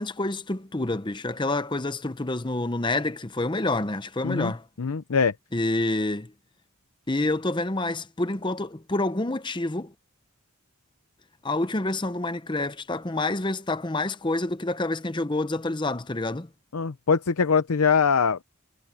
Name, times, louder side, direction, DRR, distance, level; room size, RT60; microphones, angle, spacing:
voice 1, 0.0-4.6 5.5-6.3 7.1-9.9 11.4-16.5, left 2 dB, 20° left, 0.7 m, -28 dB
voice 2, 4.8-5.3 16.7-18.4, left 5 dB, 80° left, 0.7 m, -22 dB
head